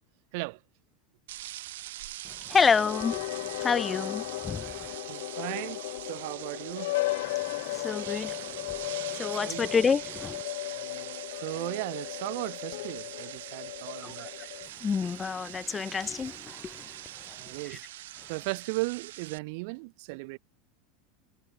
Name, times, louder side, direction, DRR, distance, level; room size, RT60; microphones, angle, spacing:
sound 1, 1.3-19.4, right 15 dB, 80° right, 1.4 m, -43 dB
voice 1, 2.5-3.2 3.6-4.9 7.6-8.4 9.1-10.4 14.0-14.1 14.8-16.9 17.3-17.4, left 6 dB, 15° left, 0.7 m, -28 dB
sound 2, 2.7-14.7, left 20 dB, 60° left, 0.5 m, -36 dB
voice 2, 4.6-7.0 9.4-9.7 10.9-11.0 11.4-14.3 17.4-17.8 18.3-20.4, right 28 dB, 50° right, 0.9 m, -36 dB
supercardioid pair, 175°, 0 cm